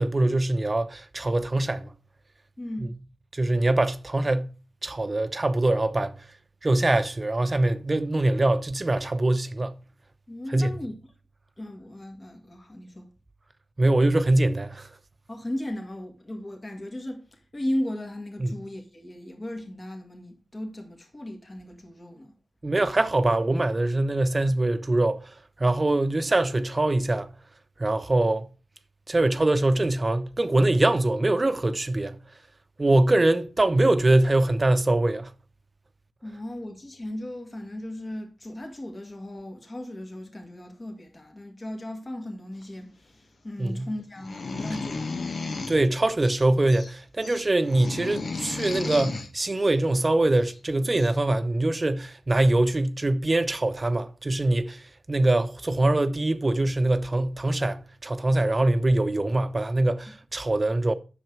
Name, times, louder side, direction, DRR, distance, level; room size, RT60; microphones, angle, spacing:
voice 1, 0.0-1.9 2.8-2.9 3.3-4.5 4.8-6.2 6.6-9.7 10.5-10.8 13.8-14.9 18.4-18.6 22.6-25.2 25.6-27.3 27.8-28.5 29.1-32.2 32.8-35.3 43.6-43.9 45.7-60.9, right 2 dB, 35° right, 0.8 m, -23 dB
voice 2, 2.6-2.9 10.3-10.9 11.6-13.1 15.3-22.3 36.2-45.5, left 1 dB, 35° left, 2.0 m, -36 dB
sound 1, 44.2-45.8 46.2-46.9 47.2-49.3 50.5-50.6 50.9-51.2, left 3 dB, 70° left, 1.0 m, -34 dB
7.7 x 6.4 x 4.6 m
cardioid pair, 45°, 0 cm